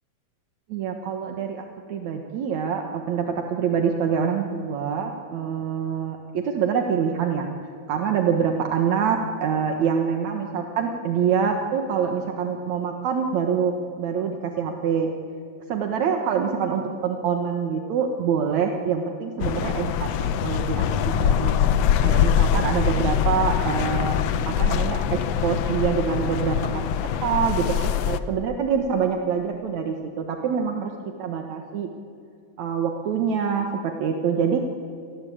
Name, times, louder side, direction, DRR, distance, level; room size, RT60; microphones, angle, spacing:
voice 1, 0.7-7.5 7.9-15.1 15.7-20.1 20.4-21.5 22.0-24.2 24.5-30.9 31.2-31.9 32.6-34.6, right 7 dB, 70° right, 4 dB, 2.7 m, -25 dB
sound 1, 19.4-28.2, left 8 dB, 65° left, 1.9 m, -23 dB
29.5 x 21.0 x 8.7 m, 2.5 s
omnidirectional pair, 3.4 m